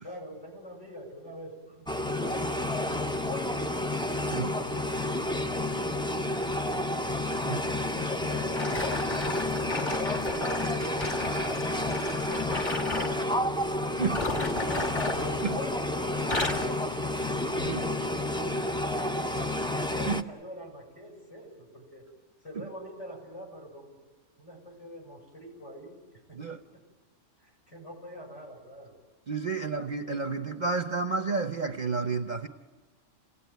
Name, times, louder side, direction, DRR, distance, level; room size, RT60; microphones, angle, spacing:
voice 1, 0.0-3.8 4.4-5.1 7.9-19.6 19.9-22.1 22.4-24.0 24.4-26.0 26.3-26.4 26.7-26.8 27.4-29.0 29.5-29.8, equal, 65° left, 7.3 m, -45 dB
sound 1, 1.9-20.2, left 1 dB, 5° left, 0.5 m, -30 dB
sound 2, 8.5-13.2 14.0-15.8 16.1-16.8 17.4-17.6 18.2-18.3, left 2 dB, 35° left, 1.8 m, -34 dB
voice 2, 29.3-32.5, right 4 dB, 40° right, 0.9 m, -31 dB
28.0 x 17.5 x 9.3 m
omnidirectional pair, 1.3 m